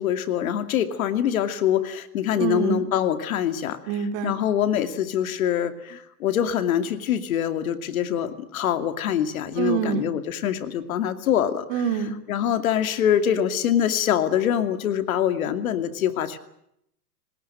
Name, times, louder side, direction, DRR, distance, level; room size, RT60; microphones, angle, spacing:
voice 1, 0.0-3.8 4.2-11.7 12.3-16.4, left 10 dB, 60° left, 10 dB, 2.6 m, -24 dB
voice 2, 2.4-2.9 3.9-4.4 9.6-10.1 11.7-12.2, right 7 dB, 35° right, 9 dB, 2.4 m, -26 dB
25.5 x 20.0 x 9.0 m, 0.76 s
hypercardioid pair, 155°, 49 cm